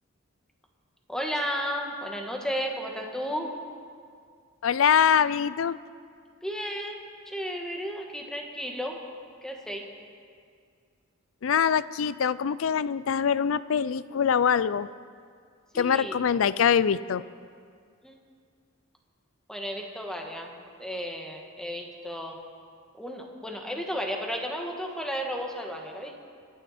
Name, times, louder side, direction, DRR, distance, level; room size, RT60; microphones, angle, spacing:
voice 1, 1.1-3.5 6.4-9.0 9.4-9.9 15.7-16.2 18.0-18.2 19.5-22.4 22.9-26.2, equal, 5° left, 1 dB, 1.5 m, -33 dB
voice 2, 4.6-5.8 11.4-14.9 15.7-17.2, left 7 dB, 75° left, 18 dB, 0.4 m, -24 dB
26.0 x 10.0 x 4.2 m, 2.2 s
head